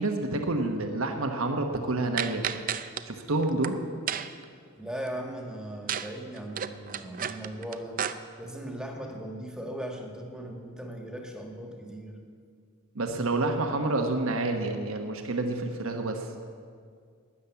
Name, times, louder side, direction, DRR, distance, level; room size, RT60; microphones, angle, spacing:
voice 1, 0.0-2.4 3.1-3.8 12.9-16.3, right 2 dB, 65° right, 4 dB, 1.1 m, -28 dB
sound 1, 2.2-3.0 3.4-3.7 4.1-4.4 5.9-6.1 6.4-8.1, right 8 dB, 40° right, 0.5 m, -32 dB
voice 2, 4.8-8.0 8.4-12.2, right 1 dB, 5° right, 2 dB, 1.7 m, -38 dB
12.5 x 10.0 x 8.2 m, 2.2 s
head